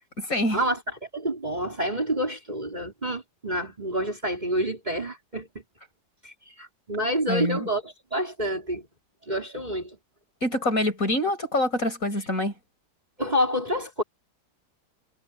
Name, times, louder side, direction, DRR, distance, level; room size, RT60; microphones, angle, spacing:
voice 1, 0.2-0.6 7.3-7.7 10.4-12.5, left 1 dB, 45° left, 8.4 m, -25 dB
voice 2, 1.1-5.6 6.2-8.9 9.3-10.0 13.2-14.0, equal, 20° right, 4.5 m, -28 dB
omnidirectional pair, 2.1 m